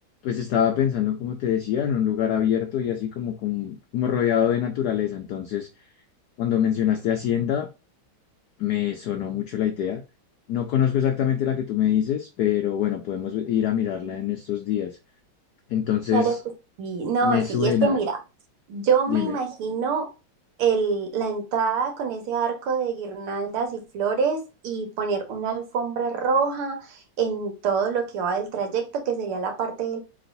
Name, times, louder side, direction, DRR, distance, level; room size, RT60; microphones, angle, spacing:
voice 1, 0.2-5.7 6.4-7.7 8.6-10.0 10.5-15.0 15.7-16.4 17.2-18.0 19.1-19.3, left 10 dB, 80° left, 0.9 m, -24 dB
voice 2, 16.8-18.2 18.7-20.1 20.6-30.0, right 5 dB, 85° right, 2.0 m, -25 dB
4.0 x 3.8 x 2.6 m
omnidirectional pair, 2.3 m